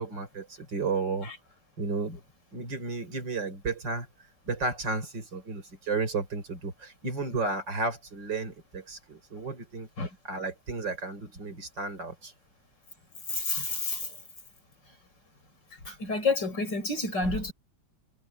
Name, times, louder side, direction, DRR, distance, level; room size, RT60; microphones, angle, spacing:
voice 1, 0.0-1.3 1.8-2.2 2.5-4.1 4.5-9.9 10.2-12.3 13.6-13.7, right 3 dB, 90° right, 5.4 m, -33 dB
voice 2, 13.3-14.1 15.9-17.5, left 3 dB, 80° left, 5.9 m, -29 dB
omnidirectional pair, 1.9 m